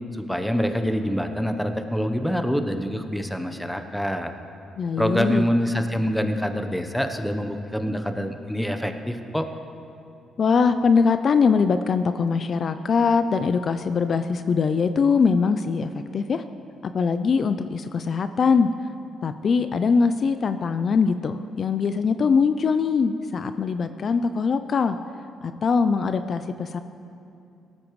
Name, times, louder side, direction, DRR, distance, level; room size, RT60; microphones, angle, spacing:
voice 1, 0.1-4.3 5.0-9.5, equal, 5° left, 7 dB, 0.9 m, -25 dB
voice 2, 4.8-5.5 10.4-16.4 16.8-18.7 19.2-25.0 25.4-26.8, left 5 dB, 50° left, 10 dB, 0.4 m, -22 dB
18.0 x 13.5 x 3.2 m, 2.7 s
cardioid pair, 90°, 0 cm